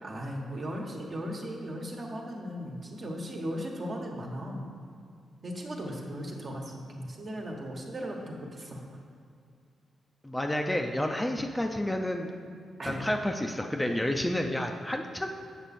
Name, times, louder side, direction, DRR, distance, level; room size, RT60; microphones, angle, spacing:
voice 1, 0.0-4.6 5.4-8.8 12.8-13.0, equal, 50° right, 0 dB, 1.4 m, -37 dB
voice 2, 10.2-12.3 12.8-15.3, left 1 dB, 10° left, 3 dB, 0.6 m, -30 dB
8.0 x 6.0 x 4.3 m, 2.4 s
cardioid pair, 70°, 0 cm